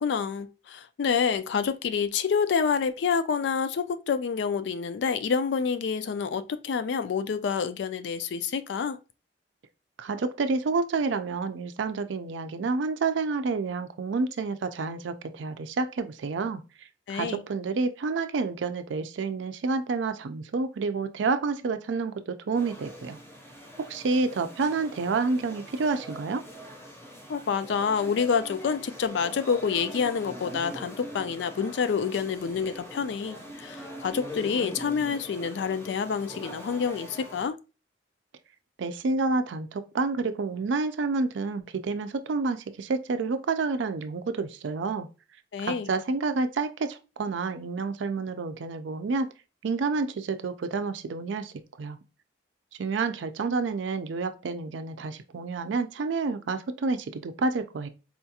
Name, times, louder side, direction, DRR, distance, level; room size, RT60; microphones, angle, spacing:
voice 1, 0.0-9.0 17.1-17.4 27.3-37.6 45.5-45.9, left 6 dB, 70° left, 0.3 m, -28 dB
voice 2, 10.0-16.6 17.1-23.2 23.9-26.4 38.8-45.1 45.6-49.3 49.6-51.5 51.8-52.0 52.8-57.9, right 4 dB, 80° right, 0.4 m, -29 dB
sound 1, 22.5-37.5, equal, 15° left, 0.6 m, -43 dB
4.3 x 2.3 x 2.7 m
head